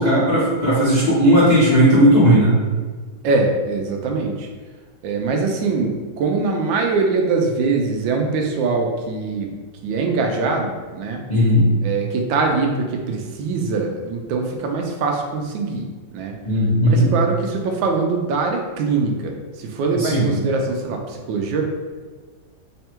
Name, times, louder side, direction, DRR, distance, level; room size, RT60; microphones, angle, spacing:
voice 1, 0.0-2.5 11.3-11.7 16.4-17.1 19.9-20.3, equal, 45° left, -10 dB, 0.5 m, -15 dB
voice 2, 3.2-4.5 5.0-9.5 9.8-11.2 11.8-16.3 16.8-21.6, right 4 dB, 80° right, 2 dB, 1.3 m, -22 dB
3.5 x 2.2 x 4.3 m, 1.4 s
omnidirectional pair, 2.2 m